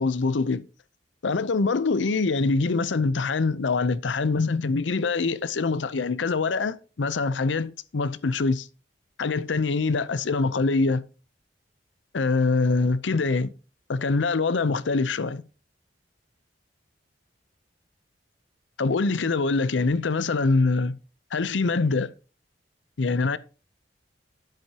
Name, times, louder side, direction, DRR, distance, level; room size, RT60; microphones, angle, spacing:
voice 1, 0.0-0.7 1.2-8.7 9.2-11.0 12.1-13.5 13.9-15.4 18.8-21.0 21.3-22.1 23.0-23.4, left 3 dB, 80° left, 0.6 m, -24 dB
10.5 x 7.7 x 2.8 m
head